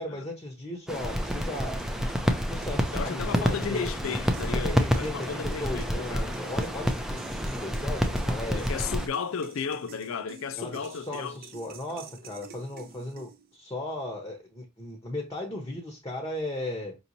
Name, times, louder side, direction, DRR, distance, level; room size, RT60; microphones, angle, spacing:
voice 1, 0.0-1.8 2.5-3.9 4.6-8.7 10.6-17.0, left 1 dB, 15° left, 0.8 m, -36 dB
sound 1, 0.9-9.1, equal, ahead, 0.4 m, -28 dB
sound 2, 0.9-13.6, right 4 dB, 45° right, 0.7 m, -49 dB
voice 2, 2.9-6.3 8.5-11.4, left 6 dB, 70° left, 0.4 m, -34 dB
5.3 x 2.9 x 2.6 m
head